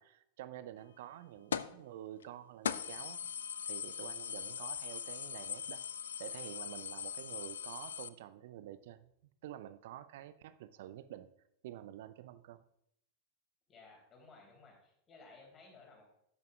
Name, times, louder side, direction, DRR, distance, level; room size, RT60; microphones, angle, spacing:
voice 1, 0.0-3.3 3.6-5.8 6.2-9.1 9.4-11.3 11.6-12.6, right 12 dB, 55° right, 13 dB, 0.5 m, -49 dB
sound 1, 1.5-1.8 2.2-2.3 2.6-8.1, left 8 dB, 65° left, 0.4 m, -40 dB
voice 2, 13.7-16.1, left 3 dB, 25° left, 0 dB, 3.3 m, -58 dB
12.5 x 9.4 x 2.4 m, 0.75 s
figure-of-eight pair, 90°, 0 cm